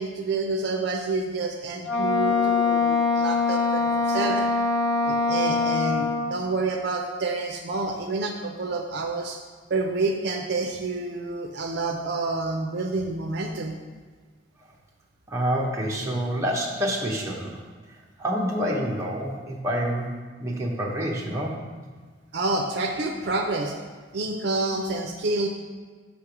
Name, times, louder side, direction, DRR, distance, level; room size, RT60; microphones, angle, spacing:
voice 1, 0.0-4.5 5.0-9.4 9.7-13.8 22.3-23.7 24.1-25.5, right 3 dB, 55° right, 2 dB, 0.5 m, -28 dB
Wind instrument woodwind instrument, 1.8-6.4, left 3 dB, 65° left, 0.6 m, -23 dB
voice 2, 15.3-17.5 18.2-20.1 20.4-21.6, equal, 15° right, -3 dB, 0.9 m, -27 dB
6.6 x 3.4 x 5.9 m, 1.5 s
head